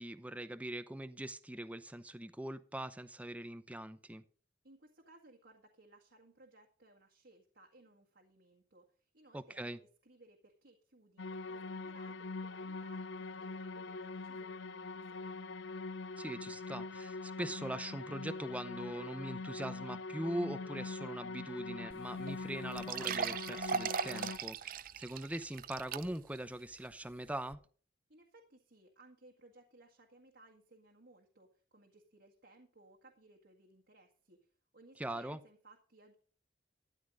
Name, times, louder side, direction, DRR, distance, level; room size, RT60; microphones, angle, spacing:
voice 1, 0.0-4.2 9.3-9.8 16.2-27.6 35.0-35.4, right 1 dB, 10° right, 0.7 m, -42 dB
voice 2, 4.6-15.6 28.1-36.2, right 2 dB, 70° right, 1.9 m, -62 dB
sound 1, 11.2-24.4, left 3 dB, 85° left, 0.6 m, -43 dB
sound 2, 21.9-22.0 22.3-22.4 22.8-26.4 26.8-26.9 27.5-27.6, right 6 dB, 50° right, 0.5 m, -38 dB
13.0 x 11.0 x 3.8 m
head